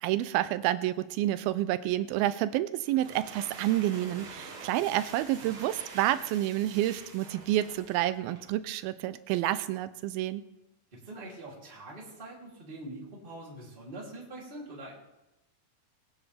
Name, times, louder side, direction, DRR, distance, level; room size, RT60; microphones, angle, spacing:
voice 1, 0.0-10.4, right 14 dB, 85° right, 13 dB, 2.4 m, -29 dB
sound 1, 2.8-8.6, right 3 dB, 45° right, 1.9 m, -47 dB
voice 2, 10.9-14.9, right 1 dB, 15° right, -5 dB, 2.9 m, -44 dB
20.5 x 9.9 x 3.5 m, 0.95 s
omnidirectional pair, 4.4 m